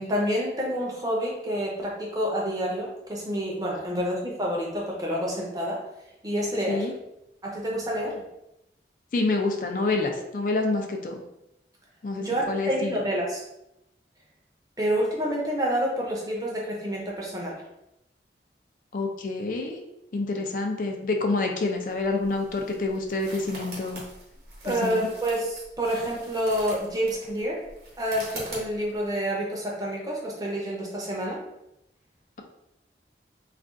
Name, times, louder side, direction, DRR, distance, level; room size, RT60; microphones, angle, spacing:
voice 1, 0.0-5.8 6.2-6.9 7.4-8.2 12.2-13.4 14.8-17.6 24.6-27.6 28.0-31.4, equal, 20° right, -3 dB, 0.6 m, -28 dB
voice 2, 9.1-11.1 12.0-13.0 18.9-19.8 20.1-24.0 24.6-25.1, left 3 dB, 50° left, 3 dB, 0.4 m, -27 dB
sound 1, 21.9-29.1, right 2 dB, 60° right, 1.0 m, -43 dB
2.4 x 2.3 x 3.6 m, 0.86 s
head